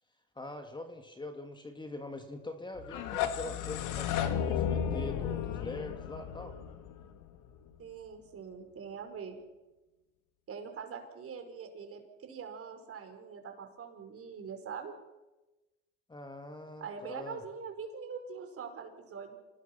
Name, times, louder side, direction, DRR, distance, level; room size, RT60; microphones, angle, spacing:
voice 1, 0.4-6.6 16.1-17.4, left 2 dB, 15° left, 5 dB, 2.6 m, -43 dB
sound 1, 2.8-7.7, left 8 dB, 60° left, 2.4 m, -34 dB
voice 2, 7.8-9.4 10.5-14.9 16.8-19.4, right 6 dB, 40° right, 5 dB, 5.0 m, -43 dB
27.5 x 19.0 x 6.0 m, 1.1 s
supercardioid pair, 90°, 36 cm